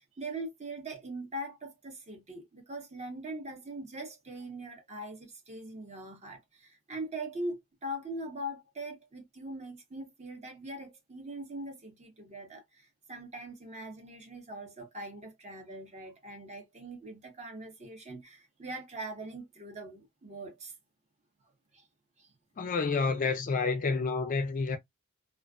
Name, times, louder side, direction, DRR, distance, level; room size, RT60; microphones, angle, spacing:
voice 1, 0.0-20.7 21.7-21.8 22.2-22.3, right 1 dB, 30° right, 0.8 m, -42 dB
voice 2, 22.6-24.8, left 4 dB, 35° left, 0.4 m, -29 dB
2.4 x 2.4 x 2.2 m
head